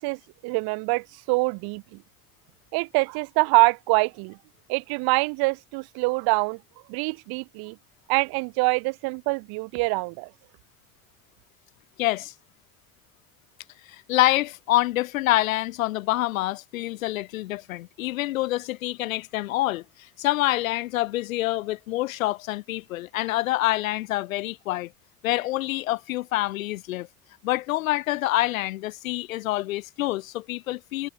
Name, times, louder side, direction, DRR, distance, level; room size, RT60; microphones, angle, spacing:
voice 1, 0.0-2.0 2.7-4.4 4.7-6.6 6.9-7.8 8.1-10.3, right 27 dB, 60° right, 2.5 m, -25 dB
voice 2, 12.0-12.3 13.9-24.9 25.2-27.1 27.4-31.1, left 17 dB, 75° left, 1.2 m, -26 dB
hypercardioid pair, 65°, 41 cm